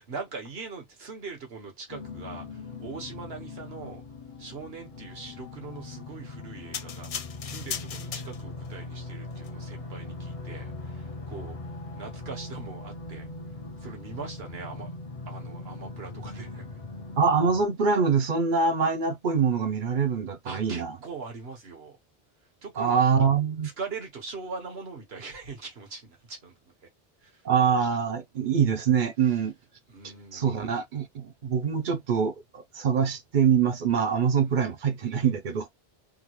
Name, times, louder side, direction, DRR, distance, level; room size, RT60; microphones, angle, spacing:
voice 1, 0.0-4.0 4.4-7.1 7.4-11.6 11.9-13.3 13.8-14.9 15.3-16.6 20.4-22.0 22.6-22.9 23.8-26.5 27.2-27.4 29.3-29.4 29.9-30.7 34.4-34.7, right 4 dB, 75° right, 1.5 m, -41 dB
sound 1, 1.9-17.6, left 2 dB, 40° left, 0.8 m, -40 dB
sound 2, 6.7-8.7 9.3-9.5, left 7 dB, 55° left, 0.4 m, -37 dB
voice 2, 17.2-20.9 22.8-23.7 27.4-29.5 30.3-35.7, right 6 dB, 55° right, 0.7 m, -24 dB
3.7 x 2.4 x 2.9 m
omnidirectional pair, 1.1 m